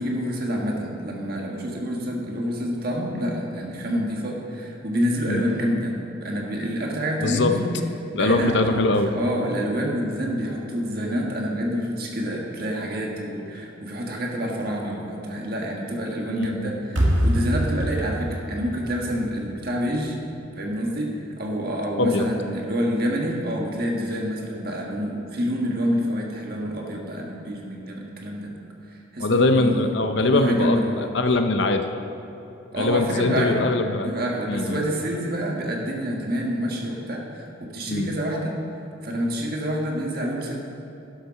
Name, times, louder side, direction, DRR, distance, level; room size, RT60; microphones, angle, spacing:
voice 1, 0.0-7.7 8.1-20.2 20.5-28.6 29.1-29.8 30.1-31.1 32.7-33.7 34.0-38.6 39.0-40.6, equal, 50° right, -1 dB, 1.5 m, -27 dB
voice 2, 7.2-7.5 8.2-9.1 16.3-16.7 22.0-22.3 29.2-31.9 32.8-34.1 34.5-34.8 37.9-38.1, left 2 dB, 60° left, 7 dB, 0.6 m, -22 dB
sound 1, 17.0-20.1, equal, 70° right, 1.8 m, -25 dB
11.5 x 6.7 x 5.8 m, 2.8 s
head